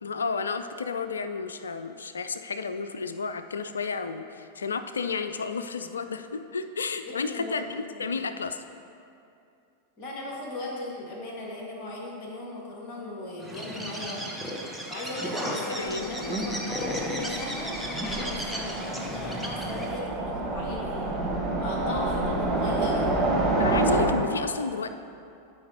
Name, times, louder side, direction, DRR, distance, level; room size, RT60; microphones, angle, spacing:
voice 1, 0.0-8.6 15.4-16.4 21.8-22.5 23.6-24.9, left 5 dB, 70° left, 10 dB, 0.3 m, -32 dB
voice 2, 7.0-8.2 10.0-14.3 14.9-21.1 21.6-23.1, left 1 dB, 35° left, -2 dB, 1.7 m, -38 dB
Bird, 13.4-20.0, equal, ahead, 0.8 m, -34 dB
Train, 15.8-24.1, right 2 dB, 20° right, 1.2 m, -29 dB
11.5 x 4.8 x 2.8 m, 2.6 s
figure-of-eight pair, 90°, 0 cm